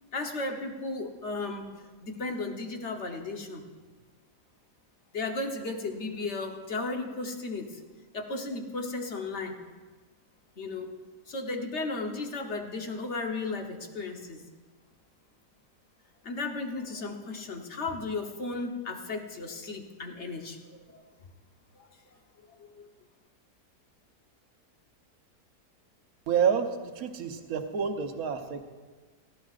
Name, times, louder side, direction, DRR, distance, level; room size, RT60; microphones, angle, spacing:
voice 1, 0.0-1.7 2.0-3.6 5.1-7.8 8.1-9.6 10.6-10.9 11.3-14.4 16.2-21.0 21.7-21.8 22.7-22.9, left 3 dB, 50° left, 3 dB, 1.3 m, -35 dB
voice 2, 26.3-28.6, right 7 dB, 65° right, 5 dB, 1.4 m, -28 dB
18.0 x 15.5 x 2.5 m, 1.4 s
omnidirectional pair, 1.7 m